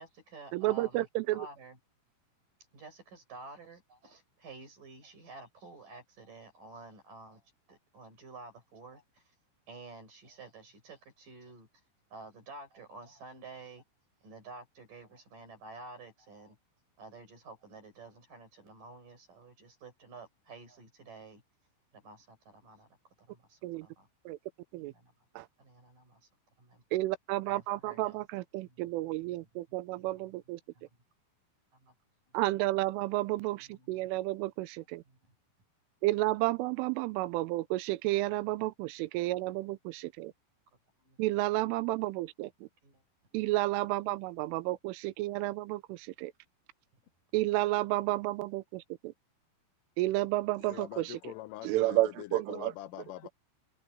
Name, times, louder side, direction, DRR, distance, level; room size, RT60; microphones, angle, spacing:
voice 1, 0.0-1.8 2.7-9.4 9.7-11.8 12.1-13.8 14.2-16.6 17.0-21.4 21.9-24.1 24.8-25.3 25.6-26.3 26.6-26.8 27.4-28.3 28.6-28.9 29.2-29.5 30.0-30.4 30.7-31.0 31.7-31.9 32.3-32.5 33.5-34.0 35.1-35.4 39.0-39.1 39.4-39.7 41.0-41.2 42.8-43.3, right 3 dB, 40° right, 7.0 m, -51 dB
voice 2, 0.5-1.4 23.6-23.9 24.3-24.4 24.7-24.9 25.4-25.5 26.9-30.6 32.3-35.0 36.0-40.3 41.2-42.7 43.3-46.3 47.3-49.1 50.0-51.2 51.6-52.7, right 18 dB, 80° right, 3.3 m, -31 dB
voice 3, 50.6-53.3, left 16 dB, 85° left, 3.3 m, -44 dB
omnidirectional pair, 5.8 m